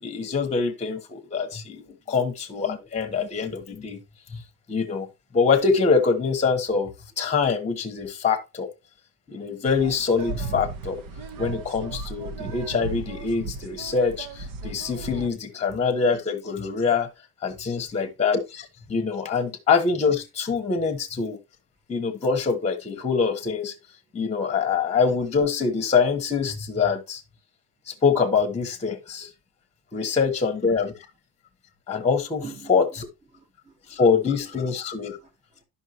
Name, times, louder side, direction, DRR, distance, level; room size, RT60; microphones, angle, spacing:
voice 1, 0.0-4.0 4.3-4.4 4.7-5.1 5.3-6.9 7.2-8.7 9.3-11.0 11.4-17.1 17.4-21.4 21.9-23.8 24.1-27.2 27.9-29.3 29.9-31.0 31.9-32.4 32.7-33.1 33.9-35.2, left 5 dB, 15° left, 1.1 m, -24 dB
voice 2, 1.8-2.2 2.6-3.3 17.8-17.9 30.0-30.2 32.4-32.8 33.3-34.0 35.2-35.6, right 4 dB, 20° right, 1.2 m, -46 dB
sound 1, 9.7-15.3, right 3 dB, 60° right, 1.1 m, -35 dB
11.0 x 5.7 x 2.9 m
cardioid pair, 150°, 39 cm